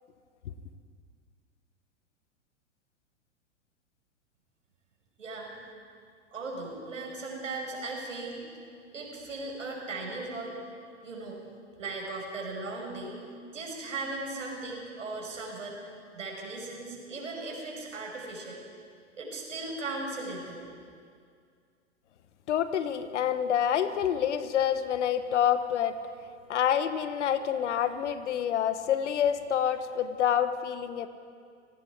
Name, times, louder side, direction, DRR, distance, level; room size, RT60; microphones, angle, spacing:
voice 1, 5.2-5.5 6.3-8.4 8.9-10.5 11.0-11.4 11.8-13.2 13.5-15.8 16.1-18.6 19.1-20.6, right 3 dB, 85° right, 0 dB, 6.1 m, -37 dB
voice 2, 22.5-25.9 26.5-31.1, left 9 dB, 70° left, 11 dB, 1.4 m, -27 dB
30.0 x 18.5 x 4.8 m, 2.2 s
hypercardioid pair, 105°, 37 cm